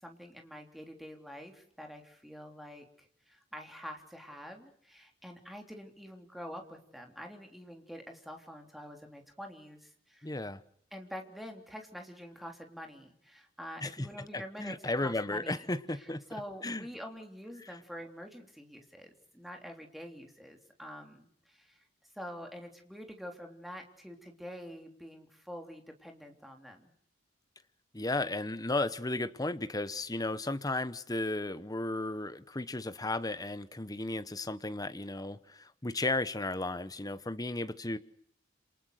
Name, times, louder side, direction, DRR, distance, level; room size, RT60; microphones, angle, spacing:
voice 1, 0.0-10.3 10.9-21.8 22.1-26.9, equal, ahead, 3 dB, 3.4 m, -46 dB
voice 2, 10.2-10.6 13.8-14.1 14.3-16.2 16.6-16.9 27.9-38.0, left 2 dB, 20° left, 12 dB, 1.1 m, -34 dB
28.0 x 27.0 x 6.6 m, 0.66 s
head